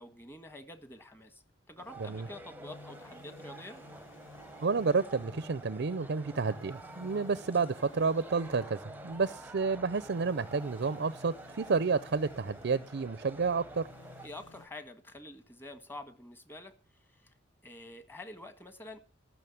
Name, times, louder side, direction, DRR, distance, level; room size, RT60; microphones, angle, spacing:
voice 1, 0.0-1.4 1.7-3.8 14.2-16.7 17.1-17.3 17.6-19.0, left 1 dB, 10° left, 1.5 m, -47 dB
sound 1, 1.8-14.7, left 3 dB, 70° left, 0.9 m, -54 dB
sound 2, 1.9-14.3, right 2 dB, 10° right, 0.8 m, -49 dB
voice 2, 4.6-8.8 9.0-13.9, right 4 dB, 60° right, 0.5 m, -30 dB
14.5 x 6.3 x 8.6 m
head